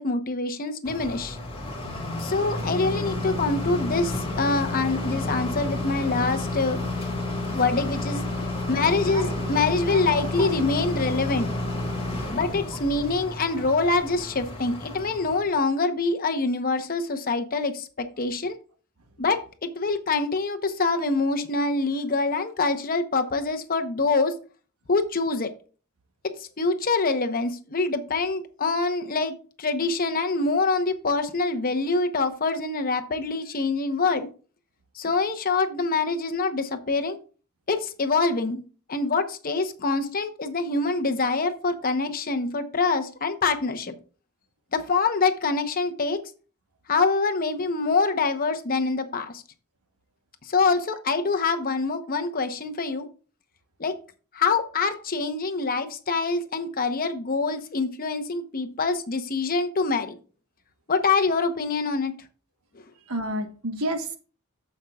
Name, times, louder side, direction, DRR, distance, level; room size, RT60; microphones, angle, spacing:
voice 1, 0.0-1.4 2.2-6.8 7.5-8.2 8.7-11.5 12.3-18.6 19.2-24.3 24.9-25.5 26.2-34.3 34.9-37.2 37.7-38.6 38.9-43.9 44.7-46.2 46.9-49.4 50.4-53.1 53.8-54.0 54.3-60.1 60.9-62.1, left 3 dB, 45° left, 7 dB, 0.9 m, -25 dB
sound 1, 0.8-15.5, left 2 dB, 25° left, 2.1 m, -30 dB
voice 2, 9.1-9.5 9.9-10.0 10.4-10.5 63.1-64.2, right 1 dB, 80° right, 6 dB, 1.3 m, -30 dB
14.5 x 5.5 x 2.4 m, 0.38 s
head